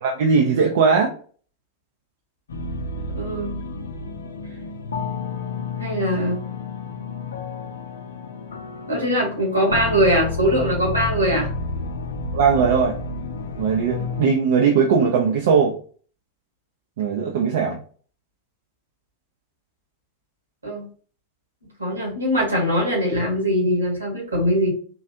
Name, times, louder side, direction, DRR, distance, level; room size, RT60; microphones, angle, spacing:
voice 1, 0.0-1.1 12.3-13.0 13.6-15.7 17.0-17.8, right 6 dB, 55° right, 2 dB, 0.5 m, -19 dB
sound 1, 2.5-14.3, left 3 dB, 65° left, 0.5 m, -30 dB
voice 2, 3.1-3.6 5.8-6.4 8.9-11.5 20.6-20.9 21.8-24.7, equal, 80° right, -1 dB, 1.8 m, -21 dB
3.8 x 3.1 x 2.6 m, 0.43 s
figure-of-eight pair, 90°, 0 cm